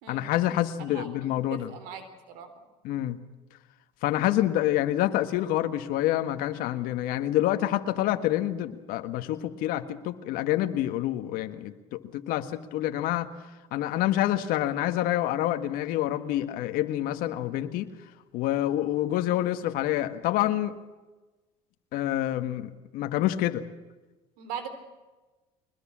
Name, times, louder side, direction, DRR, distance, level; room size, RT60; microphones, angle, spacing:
voice 1, 0.1-1.7 2.8-3.2 4.0-13.3 13.7-17.9 18.3-20.7 21.9-23.6, left 13 dB, 70° left, 8 dB, 1.6 m, -27 dB
voice 2, 0.8-2.5 24.4-24.7, right 7 dB, 75° right, 9 dB, 3.9 m, -40 dB
22.5 x 21.0 x 7.5 m, 1.2 s
supercardioid pair, 90°, 16 cm